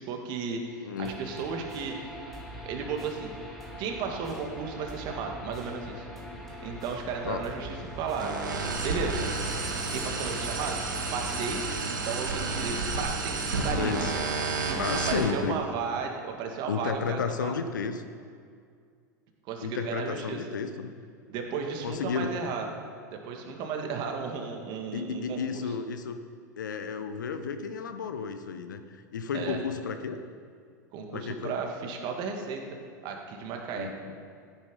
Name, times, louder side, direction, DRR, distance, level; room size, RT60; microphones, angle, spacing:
voice 1, 0.0-2.0 2.6-3.3 3.8-6.1 6.6-8.4 8.8-9.3 9.6-10.8 11.1-14.0 14.6-14.8 15.1-17.5 19.5-20.4 21.3-22.6 23.1-25.6 29.3-29.6 30.9-32.8 33.0-33.9, right 5 dB, 45° right, 2 dB, 2.2 m, -34 dB
voice 2, 0.8-1.1 7.2-7.4 13.8-14.5 14.7-15.6 16.7-18.0 19.6-20.9 21.8-22.3 24.9-26.2 26.6-30.2 31.1-31.6 33.8-34.1, left 6 dB, 75° left, 9 dB, 1.0 m, -32 dB
sound 1, 1.0-11.8, equal, 5° left, 2.5 m, -42 dB
sound 2, 8.2-15.3, right 3 dB, 80° right, 1.9 m, -31 dB
14.0 x 9.4 x 5.5 m, 2.1 s
hypercardioid pair, 90°, 10 cm